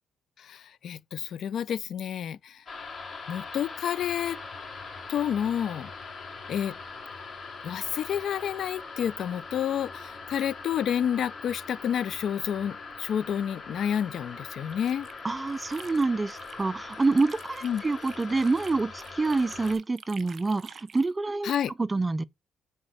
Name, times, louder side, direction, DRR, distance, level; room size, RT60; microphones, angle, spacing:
voice 1, 0.4-2.6 3.3-4.4 5.1-5.9 6.5-6.7 7.6-15.1 17.6-17.8 21.4-21.7, left 9 dB, 65° left, 0.5 m, -29 dB
sound 1, 2.7-19.7, left 4 dB, 40° left, 3.7 m, -42 dB
sound 2, 14.5-16.7 16.9-21.1, right 6 dB, 50° right, 0.8 m, -49 dB
voice 2, 15.2-21.5 21.8-22.2, right 3 dB, 20° right, 0.4 m, -27 dB
6.2 x 4.3 x 6.5 m
cardioid pair, 90°, 0 cm